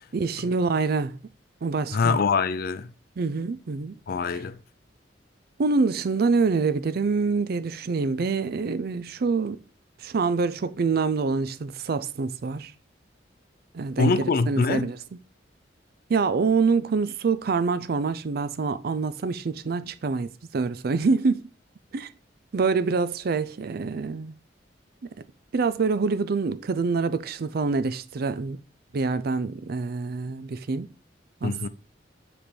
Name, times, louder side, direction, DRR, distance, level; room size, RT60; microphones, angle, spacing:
voice 1, 0.1-1.1 1.6-2.2 3.2-4.0 5.6-9.6 10.0-12.7 13.7-15.0 16.1-21.5 21.9-22.1 22.5-24.3 25.5-28.6 28.9-30.9 31.4-31.7, right 4 dB, 55° right, 0.4 m, -26 dB
voice 2, 1.9-2.9 4.1-4.6 14.0-14.9 31.4-31.7, left 4 dB, 55° left, 0.4 m, -24 dB
7.3 x 3.4 x 4.4 m
head